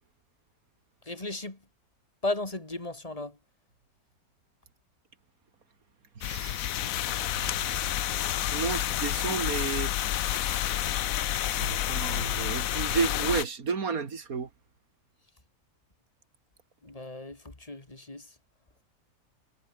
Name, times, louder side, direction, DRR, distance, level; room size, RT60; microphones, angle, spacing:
voice 1, 1.1-1.6 2.2-3.4 16.8-18.3, left 2 dB, 25° left, 2.8 m, -35 dB
sound 1, 6.2-13.4, left 12 dB, 70° left, 1.1 m, -29 dB
voice 2, 6.2-6.8 7.3-7.8 8.4-9.9 11.5-14.5, right 5 dB, 70° right, 2.5 m, -32 dB
omnidirectional pair, 1.6 m